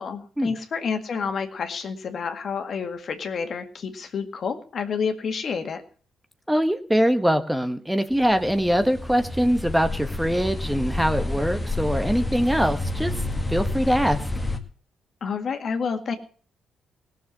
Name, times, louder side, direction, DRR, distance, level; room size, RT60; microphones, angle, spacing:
voice 1, 0.0-5.8 15.2-16.1, left 5 dB, 50° left, 6 dB, 1.9 m, -29 dB
voice 2, 6.5-13.2 13.5-14.2, equal, 5° right, 9 dB, 1.2 m, -23 dB
sound 1, 8.1-14.6, left 2 dB, 15° left, 2.1 m, -29 dB
17.5 x 7.1 x 7.4 m, 0.43 s
cardioid pair, 90°, 0 cm